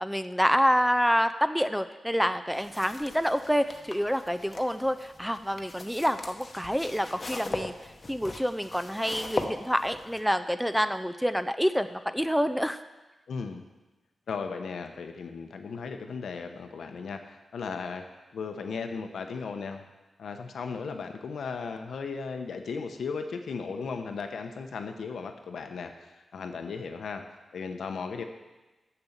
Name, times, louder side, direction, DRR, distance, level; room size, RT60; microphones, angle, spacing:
voice 1, 0.0-7.7 8.1-12.8, equal, ahead, 10 dB, 0.3 m, -27 dB
sound 1, 2.5-10.2, left 2 dB, 35° left, 0.9 m, -40 dB
voice 2, 13.3-13.6 14.3-18.1 18.3-19.9 20.2-27.3 27.5-28.2, left 5 dB, 80° left, 6 dB, 0.8 m, -36 dB
6.9 x 6.8 x 7.2 m, 1.1 s
wide cardioid pair, 120°, 0 cm